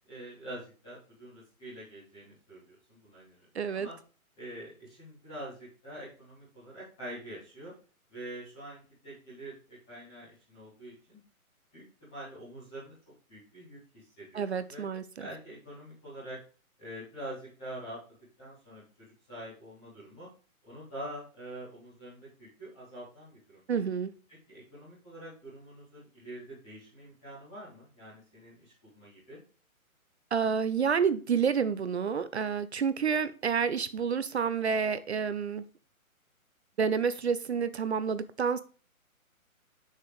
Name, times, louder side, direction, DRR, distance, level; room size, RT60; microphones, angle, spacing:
voice 1, 0.1-3.9 4.4-7.7 8.1-11.2 11.7-12.9 13.3-14.8 15.2-16.4 16.8-18.0 18.4-20.3 20.6-23.7 24.5-29.4, right 1 dB, ahead, -14 dB, 0.6 m, -45 dB
voice 2, 3.5-3.9 14.3-15.0 23.7-24.1 30.3-35.6 36.8-38.6, right 6 dB, 50° right, 14 dB, 0.5 m, -29 dB
6.9 x 6.6 x 3.1 m, 0.37 s
hypercardioid pair, 160°, 43 cm